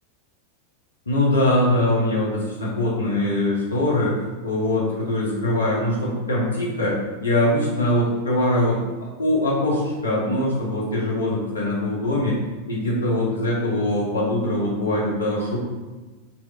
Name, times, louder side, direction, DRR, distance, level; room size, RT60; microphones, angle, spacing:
voice 1, 1.1-4.1 4.4-6.9 7.2-8.9 9.2-12.4 12.7-15.6, left 1 dB, 75° left, -4 dB, 1.0 m, -22 dB
4.0 x 3.0 x 2.4 m, 1.2 s
figure-of-eight pair, 90°, 0 cm